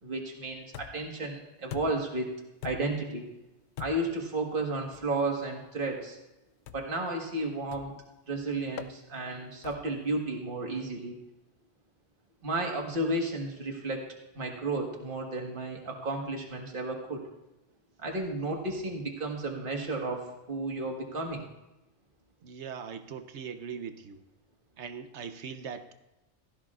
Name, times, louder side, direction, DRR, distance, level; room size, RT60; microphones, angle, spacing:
voice 1, 0.0-2.3 2.6-3.2 3.8-6.2 6.7-7.9 8.3-11.2 12.4-14.0 14.3-17.2 18.0-21.5, right 2 dB, 50° right, 1 dB, 1.7 m, -33 dB
sound 1, 0.7-1.2 1.7-2.2 2.6-3.1 3.8-4.2 4.9-5.1 6.7-7.0 7.7-8.1 8.8-9.0 9.6-10.0, left 11 dB, 70° left, 0.8 m, -43 dB
voice 2, 22.4-24.2 24.8-25.9, right 6 dB, 75° right, 9 dB, 1.1 m, -40 dB
16.5 x 13.5 x 2.5 m, 0.96 s
omnidirectional pair, 1.2 m